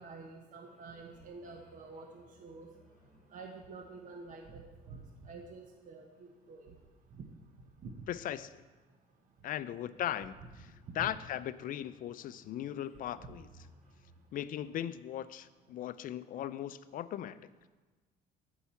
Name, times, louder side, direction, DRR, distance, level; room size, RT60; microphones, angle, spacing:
voice 1, 0.0-2.7 3.3-6.7 7.2-7.3 7.8-7.9 11.0-11.1 13.2-13.3, right 4 dB, 50° right, 2 dB, 1.0 m, -48 dB
sound 1, 0.6-16.0, equal, 5° left, 3.2 m, -66 dB
voice 2, 8.1-8.6 9.4-10.7 11.0-13.5 14.3-17.4, left 11 dB, 55° left, 14 dB, 0.4 m, -38 dB
9.8 x 4.8 x 7.1 m, 1.3 s
cardioid pair, 110°, 17 cm